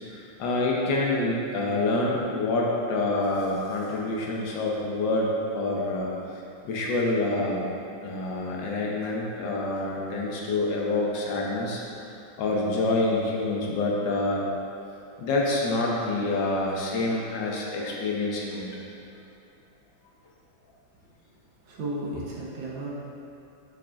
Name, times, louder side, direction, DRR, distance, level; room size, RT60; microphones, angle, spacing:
voice 1, 0.1-7.6 8.0-11.8 12.4-14.4 15.2-18.7, left 2 dB, 80° left, -3 dB, 1.6 m, -27 dB
voice 2, 21.6-22.9, right 2 dB, 90° right, -4 dB, 1.8 m, -34 dB
7.0 x 6.1 x 2.5 m, 2.8 s
omnidirectional pair, 2.0 m